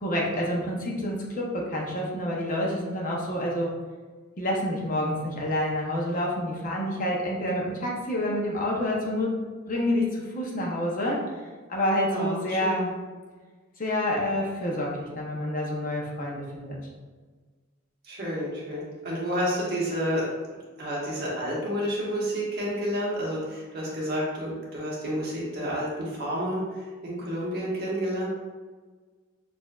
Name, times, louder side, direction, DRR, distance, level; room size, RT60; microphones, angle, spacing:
voice 1, 0.0-3.7 4.4-9.3 9.7-11.2 11.7-12.9 13.8-16.8, left 1 dB, 40° left, -2 dB, 0.7 m, -28 dB
voice 2, 12.1-12.9 18.0-20.2 20.8-28.3, equal, 50° right, -6 dB, 1.2 m, -30 dB
6.2 x 2.6 x 2.3 m, 1.4 s
head